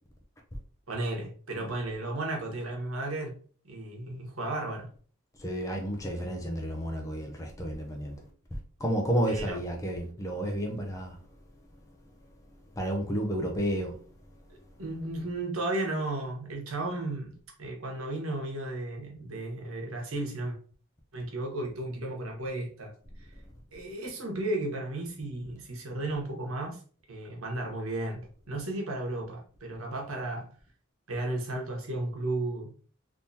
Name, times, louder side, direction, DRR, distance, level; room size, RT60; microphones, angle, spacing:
voice 1, 0.9-3.4 3.6-4.9 9.3-9.6 14.5-20.6 21.1-22.9 23.7-26.8 27.1-30.5 31.1-32.7, right 2 dB, 85° right, 1.1 m, -34 dB
voice 2, 5.4-11.2 12.8-14.0, equal, 15° left, 0.5 m, -31 dB
3.6 x 2.8 x 2.7 m
head